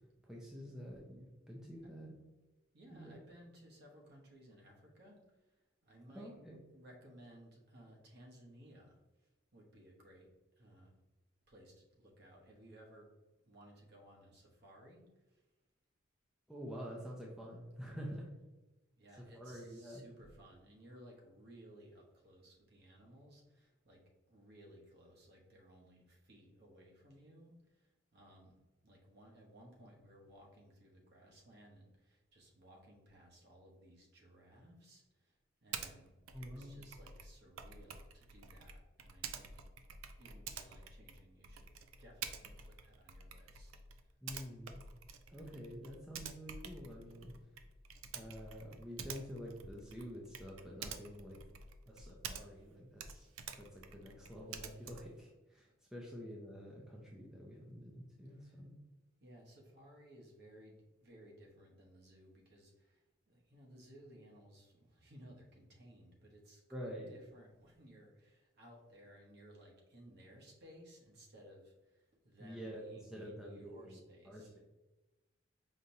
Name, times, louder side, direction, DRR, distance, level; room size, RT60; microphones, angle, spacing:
voice 1, 0.2-2.1 2.9-3.2 6.1-6.6 16.5-18.3 19.2-20.0 36.3-36.7 44.2-44.8 45.3-47.3 48.1-51.4 51.9-58.8 66.7-67.1 72.4-74.0 74.3-74.6, equal, 5° right, -3 dB, 0.5 m, -48 dB
voice 2, 2.7-10.3 10.6-10.9 11.5-13.1 13.4-15.4 19.0-28.6 28.8-39.7 40.2-41.7 42.0-43.7 44.0-44.1 58.3-58.6 59.2-74.6, equal, 55° right, -1 dB, 1.0 m, -59 dB
Typing, 35.7-35.9 36.3-52.7 53.0-55.2, right 6 dB, 90° right, 0.4 m, -49 dB
5.0 x 2.9 x 2.7 m, 1.1 s
head